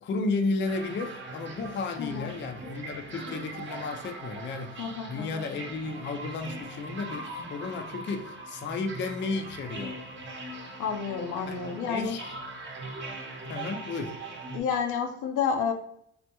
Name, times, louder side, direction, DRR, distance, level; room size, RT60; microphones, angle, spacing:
voice 1, 0.0-10.0 11.5-11.6 11.9-12.3 13.4-14.2, left 3 dB, 40° left, 0.4 m, -33 dB
sound 1, 0.7-14.6, right 2 dB, 40° right, 0.7 m, -41 dB
voice 2, 2.0-2.3 4.8-5.5 10.8-12.1 14.5-15.7, left 6 dB, 85° left, 0.6 m, -30 dB
3.3 x 2.1 x 2.9 m
cardioid pair, 90°, 30 cm